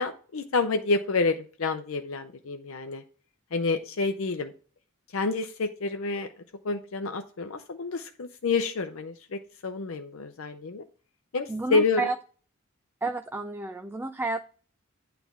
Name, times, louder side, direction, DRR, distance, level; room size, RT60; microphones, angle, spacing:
voice 1, 0.0-3.0 3.5-4.5 5.1-6.3 6.6-10.8 11.3-12.0, left 3 dB, 70° left, 7 dB, 0.6 m, -28 dB
voice 2, 11.5-12.2 13.0-14.4, right 3 dB, 10° right, 8 dB, 0.3 m, -30 dB
9.2 x 3.4 x 5.9 m, 0.40 s
head